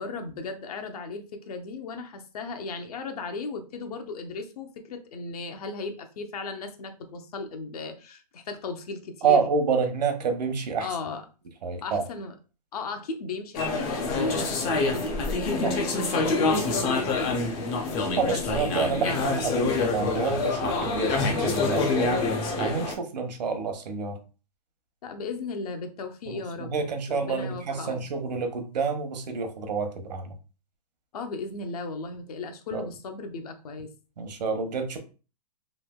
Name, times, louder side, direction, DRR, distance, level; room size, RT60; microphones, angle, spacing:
voice 1, 0.0-9.5 10.8-11.2 11.8-12.3 12.7-17.4 18.2-18.4 19.0-19.4 25.0-26.7 27.1-28.0 31.1-33.9, left 3 dB, 65° left, 6 dB, 0.7 m, -36 dB
voice 2, 9.2-10.9 11.6-12.0 15.6-15.7 18.2-22.1 22.6-24.2 26.3-30.3 32.7-32.8 34.2-35.0, right 5 dB, 85° right, 6 dB, 0.8 m, -28 dB
sound 1, 13.5-22.9, left 3 dB, 15° left, 0.3 m, -26 dB
3.2 x 2.7 x 2.2 m, 0.34 s
hypercardioid pair, 160°, 21 cm